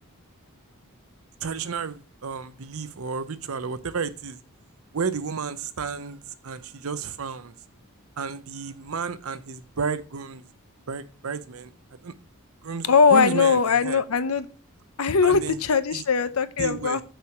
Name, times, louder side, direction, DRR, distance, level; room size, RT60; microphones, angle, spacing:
voice 1, 1.4-4.4 4.9-7.5 8.2-10.5 10.9-11.7 12.0-12.1 12.6-14.0 15.2-15.6 15.9-16.0 16.6-17.0, right 5 dB, 70° right, 0.7 m, -32 dB
voice 2, 12.8-14.5 15.0-17.0, left 5 dB, 85° left, 0.7 m, -20 dB
6.2 x 4.8 x 6.3 m
head